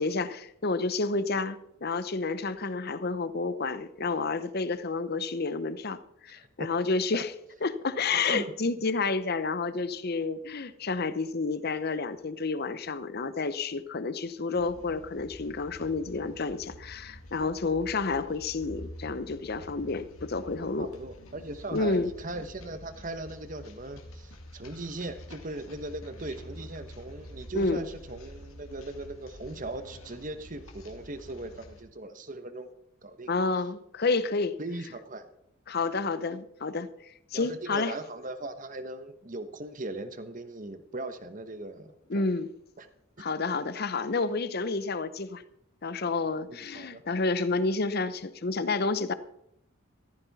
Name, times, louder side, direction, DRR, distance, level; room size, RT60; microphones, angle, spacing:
voice 1, 0.0-7.3 7.6-20.9 21.7-22.1 27.5-27.8 33.3-34.6 35.7-37.9 42.1-42.5 43.2-45.4 45.8-49.1, left 3 dB, 45° left, 14 dB, 0.7 m, -30 dB
voice 2, 6.4-6.7 7.1-7.2 8.3-8.5 20.8-32.7 33.0-33.3 34.6-35.3 37.3-42.2 42.8-42.9 46.5-47.2, right 2 dB, 40° right, 10 dB, 1.1 m, -39 dB
sound 1, 14.5-31.8, equal, 85° left, 2.3 m, -48 dB
15.0 x 14.0 x 4.1 m, 0.78 s
head